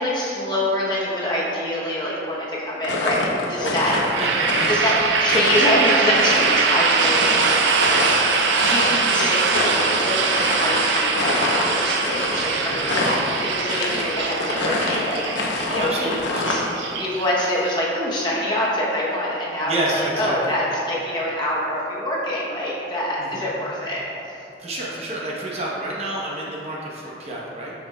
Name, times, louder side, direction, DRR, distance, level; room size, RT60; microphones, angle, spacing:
voice 1, 0.0-4.0 4.7-7.8 8.7-13.1 13.4-15.2 15.7-16.6 17.0-24.0, left 1 dB, 25° left, -5 dB, 0.8 m, -25 dB
sound 1, 2.8-16.7, left 2 dB, 80° left, 0.7 m, -27 dB
voice 2, 3.6-4.7 12.6-12.8 15.7-16.7 19.7-20.4 23.2-23.4 24.6-27.7, right 1 dB, 35° right, -4 dB, 0.8 m, -29 dB
sound 2, 3.9-17.7, right 4 dB, 80° right, 0.4 m, -22 dB
7.5 x 5.9 x 2.2 m, 2.8 s
head